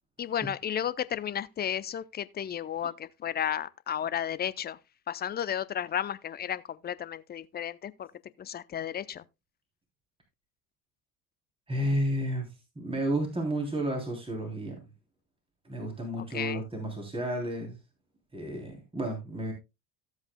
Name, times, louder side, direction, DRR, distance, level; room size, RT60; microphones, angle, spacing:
voice 1, 0.2-4.8 5.1-8.1 8.4-9.2 16.2-16.7, left 9 dB, 20° left, 0.5 m, -33 dB
voice 2, 11.7-14.8 15.6-17.8 18.3-19.5, right 1 dB, 10° right, 3.2 m, -32 dB
14.5 x 8.0 x 2.2 m
hypercardioid pair, 75°, 47 cm